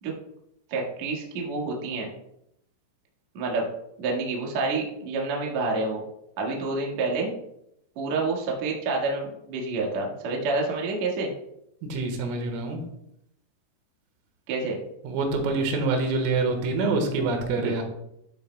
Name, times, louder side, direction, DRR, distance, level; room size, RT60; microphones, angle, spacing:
voice 1, 0.7-2.1 3.3-3.7 4.0-6.0 6.4-7.3 8.0-11.3 14.5-14.8 17.6-17.8, right 3 dB, 65° right, -1 dB, 1.8 m, -28 dB
voice 2, 11.8-12.8 15.1-17.8, right 3 dB, 85° right, 4 dB, 3.9 m, -26 dB
12.0 x 8.2 x 2.2 m, 0.78 s
omnidirectional pair, 5.9 m